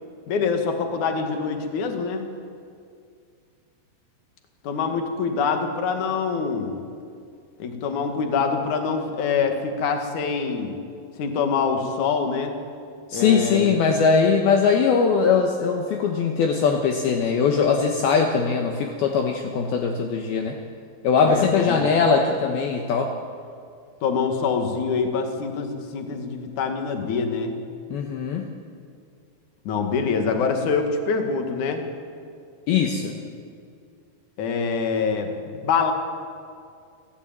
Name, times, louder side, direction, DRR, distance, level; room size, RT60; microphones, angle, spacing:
voice 1, 0.3-2.3 4.6-6.8 7.6-10.8 11.2-12.6 13.1-13.8 21.3-21.9 24.0-27.6 29.6-31.8 34.4-35.9, left 5 dB, 50° left, 5 dB, 3.0 m, -25 dB
voice 2, 13.1-20.6 21.0-23.1 27.9-28.4 32.7-33.1, left 5 dB, 70° left, 3 dB, 3.0 m, -21 dB
29.0 x 15.0 x 9.1 m, 2.3 s
omnidirectional pair, 5.0 m